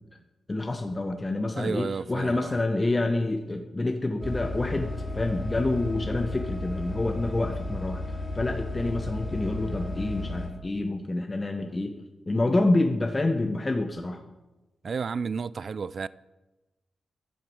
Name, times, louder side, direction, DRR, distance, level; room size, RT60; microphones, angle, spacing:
voice 1, 0.5-14.2, left 2 dB, 25° left, 1.1 m, -28 dB
voice 2, 1.6-2.6 14.8-16.1, right 5 dB, 55° right, 0.4 m, -32 dB
sound 1, 4.2-10.5, left 2 dB, 10° right, 3.9 m, -34 dB
11.0 x 11.0 x 7.7 m
cardioid pair, 85°, 0 cm